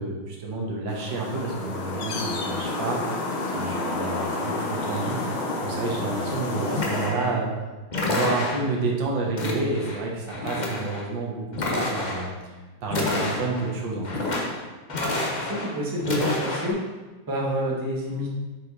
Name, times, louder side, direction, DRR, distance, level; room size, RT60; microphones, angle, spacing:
voice 1, 0.0-5.2 5.6-7.5 8.0-12.5 12.8-14.1, right 3 dB, 70° right, -1 dB, 1.9 m, -29 dB
sound 1, 0.9-7.1, left 2 dB, 90° left, 1.8 m, -30 dB
sound 2, 6.8-7.4 7.9-8.8 9.4-10.0 10.3-11.0 11.5-12.3 12.9-13.7 14.0-14.6 14.9-15.7 16.0-16.7, left 2 dB, 40° left, 0.6 m, -28 dB
voice 2, 14.9-16.8 17.3-18.3, equal, 15° right, -4 dB, 0.8 m, -28 dB
6.3 x 4.9 x 4.1 m, 1.2 s
omnidirectional pair, 2.2 m